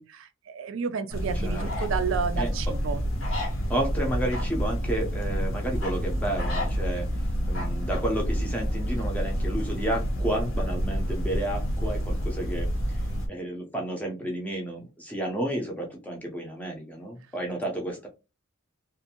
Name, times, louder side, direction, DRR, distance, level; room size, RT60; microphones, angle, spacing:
voice 1, 0.0-3.0, right 6 dB, 65° right, 0.3 m, -31 dB
sound 1, 1.1-13.3, equal, 70° left, 0.9 m, -28 dB
voice 2, 1.3-1.7 2.4-2.8 3.7-18.1, right 1 dB, 5° left, 0.6 m, -32 dB
2.5 x 2.5 x 2.8 m
head